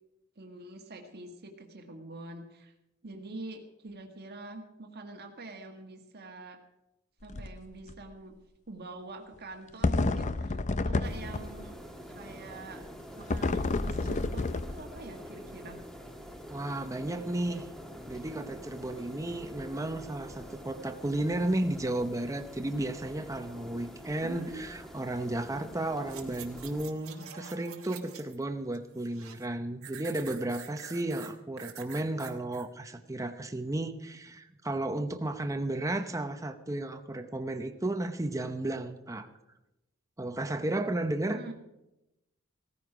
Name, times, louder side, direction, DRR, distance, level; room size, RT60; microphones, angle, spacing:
voice 1, 0.4-2.7 3.0-6.6 7.2-8.3 8.7-11.8 12.1-12.8 13.2-15.8 24.2-24.7 41.3-41.5, right 2 dB, 50° right, 3 dB, 1.5 m, -45 dB
sound 1, 7.2-7.6 7.9-8.0 9.8-11.7 13.3-15.1, left 3 dB, 35° left, 0.6 m, -30 dB
sound 2, 11.0-26.8, equal, ahead, 1.4 m, -46 dB
voice 2, 16.5-17.6 18.1-39.3 40.2-41.5, right 1 dB, 15° right, 7 dB, 0.8 m, -33 dB
sound 3, 26.0-28.4 28.7-29.5 29.8-32.7 33.1-33.2, right 9 dB, 75° right, 1.5 m, -47 dB
16.5 x 14.0 x 4.9 m, 0.93 s
head